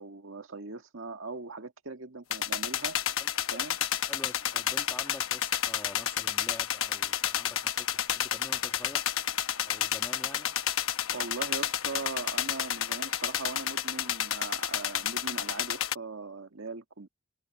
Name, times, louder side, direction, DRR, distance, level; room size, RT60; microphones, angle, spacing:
voice 1, 0.0-3.0 3.5-3.8 11.1-17.1, right 3 dB, 70° right, 1.8 m, -40 dB
sound 1, 2.3-16.0, left 10 dB, 80° left, 1.0 m, -31 dB
voice 2, 3.2-3.6 4.1-9.0 9.7-10.6, left 1 dB, 10° left, 2.2 m, -47 dB
head